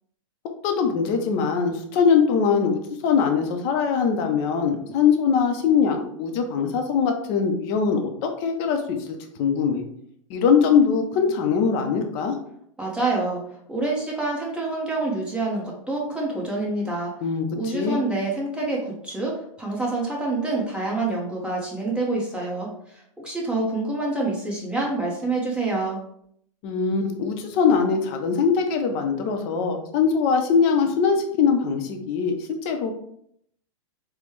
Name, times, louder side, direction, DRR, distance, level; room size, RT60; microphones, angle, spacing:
voice 1, 0.6-9.8 10.3-12.4 17.2-18.0 26.6-32.3 32.6-32.9, left 6 dB, 45° left, 5 dB, 0.7 m, -22 dB
voice 2, 12.8-13.4 13.7-17.1 17.5-26.0, right 2 dB, 5° right, -4 dB, 1.1 m, -27 dB
4.2 x 2.3 x 3.2 m, 0.70 s
hypercardioid pair, 120°, 18 cm